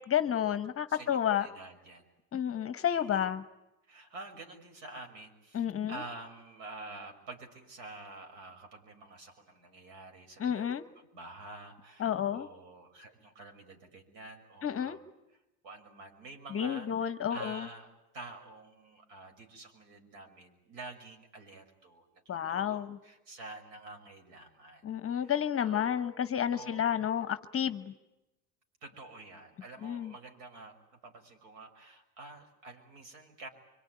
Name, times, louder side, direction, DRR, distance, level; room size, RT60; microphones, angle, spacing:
voice 1, 0.0-1.5 2.3-3.4 5.5-5.9 10.4-10.8 12.0-12.5 14.6-15.0 16.5-17.7 22.3-23.0 24.8-27.9 29.8-30.1, left 9 dB, 30° left, 12 dB, 1.1 m, -31 dB
voice 2, 0.9-2.1 2.9-3.3 3.9-15.0 15.3-24.8 25.1-26.1 26.5-26.9 28.8-33.5, right 2 dB, 60° right, 5 dB, 6.2 m, -49 dB
25.0 x 24.0 x 9.5 m, 0.96 s
supercardioid pair, 115°, 48 cm